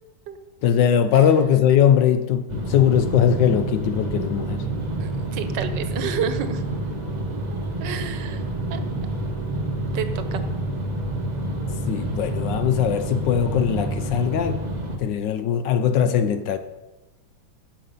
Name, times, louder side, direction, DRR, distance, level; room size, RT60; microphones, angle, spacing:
voice 1, 0.6-4.6 11.9-14.6 15.0-16.6, left 8 dB, 75° left, 10 dB, 1.2 m, -20 dB
sound 1, 2.5-15.0, right 1 dB, 30° right, 0.8 m, -28 dB
voice 2, 5.0-6.6 7.5-8.4 8.7-8.8 9.9-10.4, right 7 dB, 70° right, 10 dB, 1.4 m, -30 dB
10.5 x 7.2 x 5.4 m, 1.1 s
omnidirectional pair, 2.2 m